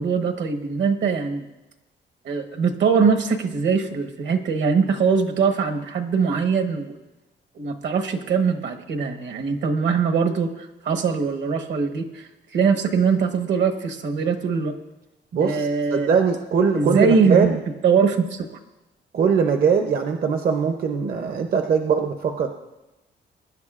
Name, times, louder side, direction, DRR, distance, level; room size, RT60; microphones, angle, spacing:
voice 1, 0.0-1.5 2.2-6.9 7.6-12.2 12.5-14.7 15.4-16.1 16.7-17.5 17.8-18.5, right 5 dB, 70° right, 5 dB, 1.2 m, -22 dB
voice 2, 15.3-17.5 19.1-22.5, right 6 dB, 50° right, 5 dB, 0.7 m, -21 dB
22.5 x 10.5 x 2.4 m, 1.0 s
wide cardioid pair, 150°, 19 cm